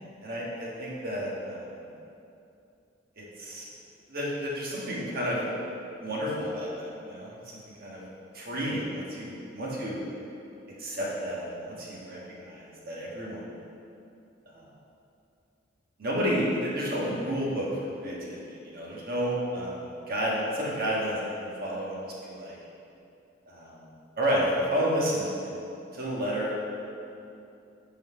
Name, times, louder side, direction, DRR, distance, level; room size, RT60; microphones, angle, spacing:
voice 1, 0.2-1.7 3.2-3.7 4.1-5.4 6.0-8.0 8.4-10.0 10.8-13.4 14.5-14.7 16.0-17.7 18.0-18.4 18.6-22.6 23.5-23.9 24.2-25.6 25.9-26.6, equal, 50° right, -5 dB, 1.5 m, -31 dB
5.7 x 4.5 x 5.6 m, 2.6 s
head